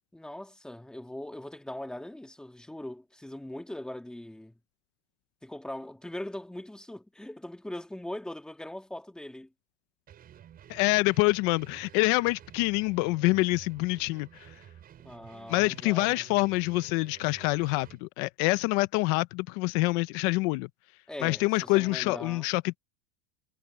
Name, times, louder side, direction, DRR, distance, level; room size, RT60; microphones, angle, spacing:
voice 1, 0.1-4.5 5.4-9.5 15.0-16.3 21.1-22.5, left 1 dB, ahead, 1.8 m, -41 dB
sound 1, 10.1-18.0, right 10 dB, 25° right, 7.2 m, -52 dB
voice 2, 10.7-14.5 15.5-20.7 21.2-22.8, left 23 dB, 45° left, 0.6 m, -26 dB
supercardioid pair, 165°, 36 cm